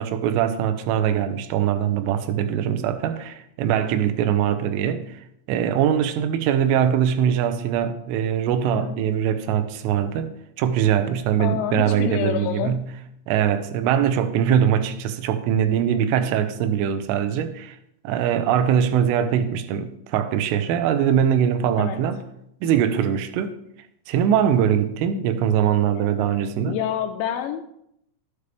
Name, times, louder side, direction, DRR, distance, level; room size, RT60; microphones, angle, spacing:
voice 1, 0.0-5.2 5.5-12.9 13.3-17.8 18.0-22.2 22.6-23.6 24.1-26.8, right 9 dB, 85° right, 3.2 m, -22 dB
voice 2, 11.4-12.7 21.8-22.0 26.7-27.8, left 10 dB, 90° left, 2.6 m, -27 dB
12.5 x 8.2 x 3.4 m
omnidirectional pair, 5.7 m